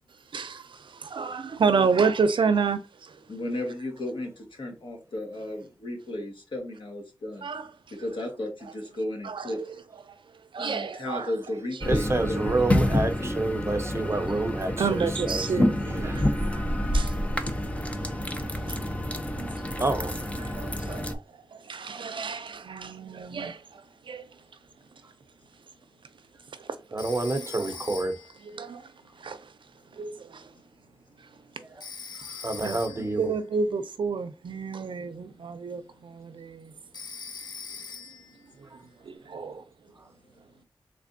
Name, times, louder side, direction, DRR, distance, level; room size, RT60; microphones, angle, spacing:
voice 1, 0.3-3.2 7.4-8.0 9.2-9.7 10.1-10.2 10.5-11.3 13.7-13.8 14.8-17.7 18.7-18.8 19.4-19.8 20.4-21.2 21.5-24.3 26.5-26.8 27.4-27.5 28.4-29.5 29.9-30.5 31.2-31.3 32.6-36.7 38.6-38.7 39.0-39.6, right 5 dB, 80° right, 0.5 m, -30 dB
voice 2, 3.3-4.3 4.6-7.4 8.0-9.6 10.6-13.5, left 1 dB, 80° left, 1.3 m, -34 dB
sound 1, 11.8-21.1, left 1 dB, 15° left, 0.4 m, -28 dB
voice 3, 11.9-15.4 16.0-16.6 19.8-20.1 26.9-28.2 31.6-31.7 32.2-33.3 38.7-38.8 40.0-40.1, right 2 dB, 30° right, 0.6 m, -29 dB
Telephone, 27.0-28.4 31.8-33.2 36.9-38.4, left 5 dB, 60° left, 0.7 m, -41 dB
3.4 x 3.3 x 2.6 m
wide cardioid pair, 105°, 8 cm